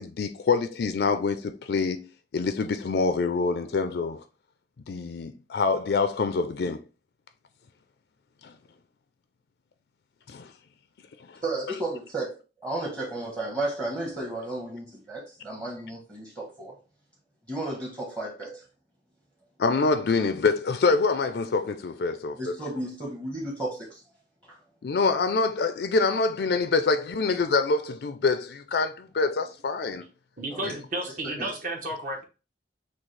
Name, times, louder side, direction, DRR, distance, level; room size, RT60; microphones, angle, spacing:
voice 1, 0.0-4.2 4.9-6.8 8.4-8.5 19.6-22.5 24.8-30.0 30.6-30.7, left 4 dB, 60° left, 0.4 m, -25 dB
voice 2, 11.4-16.7 17.5-18.6 22.4-24.0 24.5-24.6 30.5-30.8 31.4-31.5, right 2 dB, 20° right, 1.0 m, -33 dB
voice 3, 30.4-32.2, right 1 dB, 45° right, 0.9 m, -32 dB
6.1 x 2.3 x 3.2 m
head